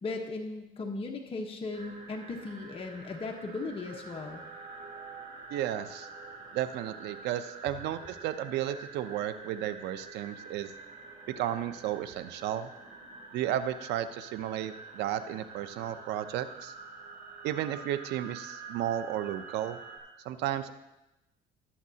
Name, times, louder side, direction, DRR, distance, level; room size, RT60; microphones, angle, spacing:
voice 1, 0.0-4.4, left 3 dB, 35° left, 2 dB, 1.1 m, -37 dB
sound 1, 1.7-20.0, right 4 dB, 65° right, 2.5 m, -47 dB
voice 2, 5.5-6.1 6.5-10.7 11.4-12.7 13.3-16.7 17.4-19.8 20.2-20.7, right 11 dB, 85° right, 12 dB, 0.7 m, -33 dB
18.0 x 7.3 x 2.8 m, 0.95 s
cardioid pair, 110°, 17 cm